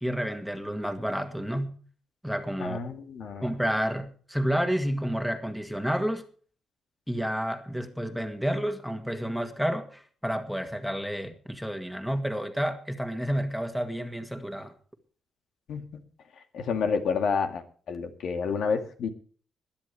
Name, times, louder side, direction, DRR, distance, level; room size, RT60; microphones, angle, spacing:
voice 1, 0.0-1.7 2.2-2.9 3.4-6.2 7.1-14.7, equal, ahead, 1.9 m, -30 dB
voice 2, 2.6-3.5 15.7-15.8 16.5-19.1, left 5 dB, 75° left, 2.2 m, -29 dB
21.5 x 10.5 x 3.4 m
cardioid pair, 110°, 0 cm